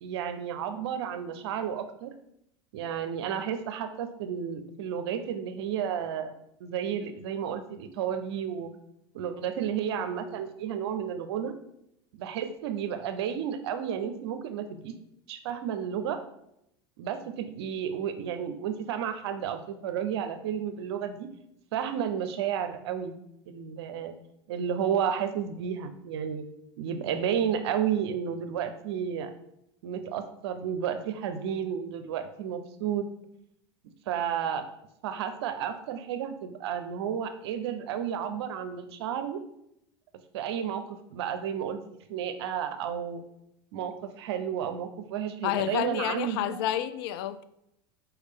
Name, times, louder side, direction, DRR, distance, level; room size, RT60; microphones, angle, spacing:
voice 1, 0.0-2.1 2.7-6.3 6.6-8.7 9.1-11.6 12.1-14.9 15.3-16.2 17.0-21.3 21.7-23.1 23.5-24.1 24.5-26.5 26.8-29.3 29.8-33.1 34.1-34.6 35.0-39.4 40.3-43.2 43.7-46.6, right 8 dB, 70° right, 9 dB, 0.6 m, -32 dB
voice 2, 45.4-47.4, left 12 dB, 65° left, 12 dB, 0.4 m, -30 dB
4.6 x 3.2 x 3.6 m, 0.78 s
hypercardioid pair, 95°, 14 cm